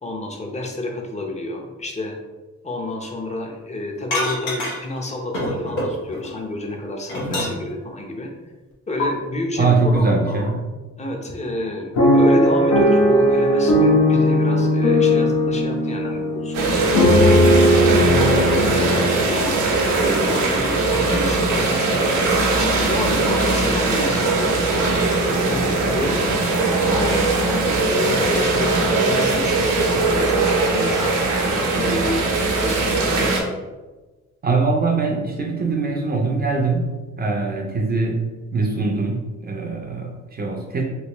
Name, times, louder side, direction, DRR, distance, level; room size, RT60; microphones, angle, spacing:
voice 1, 0.0-2.2 2.6-8.3 8.9-10.5 11.0-17.1 17.9-19.6 19.9-26.6 26.9-32.2 32.5-33.3, left 1 dB, 25° left, 2 dB, 0.7 m, -29 dB
sound 1, 4.1-5.0 5.3-6.3 6.7-7.8 9.0-9.1, left 1 dB, 85° left, 1.1 m, -26 dB
voice 2, 9.6-10.6 34.4-38.2 38.5-40.8, right 3 dB, 30° right, 1 dB, 0.5 m, -22 dB
sound 2, 12.0-20.1 20.7-20.8 21.0-21.3, equal, 65° left, 0.8 m, -17 dB
sound 3, 16.5-33.4, right 3 dB, 90° right, 0.7 m, -20 dB
3.1 x 2.8 x 3.0 m, 1.2 s
cardioid pair, 90°, 30 cm